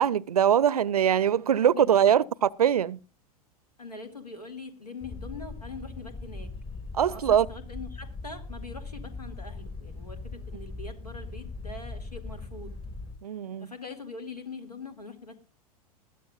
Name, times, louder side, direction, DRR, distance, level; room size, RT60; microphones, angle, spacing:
voice 1, 0.0-3.0 6.9-7.5 13.2-13.7, right 9 dB, 75° right, 0.5 m, -22 dB
voice 2, 1.5-2.1 3.8-6.5 7.1-12.8 13.6-15.4, left 4 dB, 85° left, 2.4 m, -43 dB
sound 1, 5.0-13.2, left 3 dB, 25° left, 1.7 m, -40 dB
21.0 x 13.0 x 2.4 m
figure-of-eight pair, 90°, 20 cm